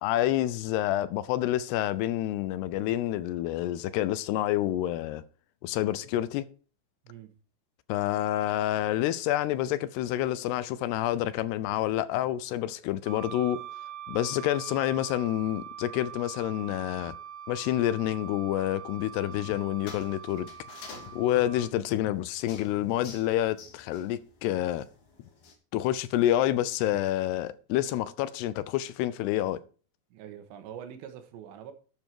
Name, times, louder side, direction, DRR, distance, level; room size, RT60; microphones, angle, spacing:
voice 1, 0.0-5.2 5.6-6.5 7.9-13.6 14.1-17.1 17.5-20.5 21.1-24.9 25.7-29.6, left 13 dB, 80° left, 2.6 m, -28 dB
Wind instrument woodwind instrument, 13.1-21.7, right 9 dB, 75° right, 3.7 m, -43 dB
sound 1, 19.3-25.5, left 5 dB, 60° left, 4.0 m, -50 dB
voice 2, 30.1-31.7, right 9 dB, 90° right, 3.6 m, -44 dB
12.0 x 7.6 x 4.8 m
omnidirectional pair, 5.0 m